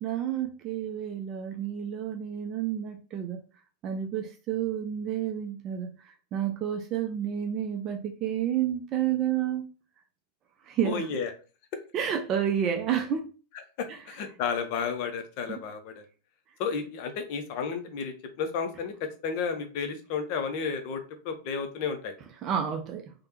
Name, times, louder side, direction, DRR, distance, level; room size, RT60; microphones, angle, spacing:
voice 1, 0.0-3.4 3.8-9.7 10.6-11.1 11.9-13.3 13.9-14.0 15.5-15.6 22.4-23.1, right 9 dB, 35° right, 0.3 m, -30 dB
voice 2, 10.8-11.3 13.8-16.1 16.6-22.1, left 6 dB, 45° left, 0.5 m, -32 dB
3.2 x 2.0 x 2.8 m
figure-of-eight pair, 90°, 0 cm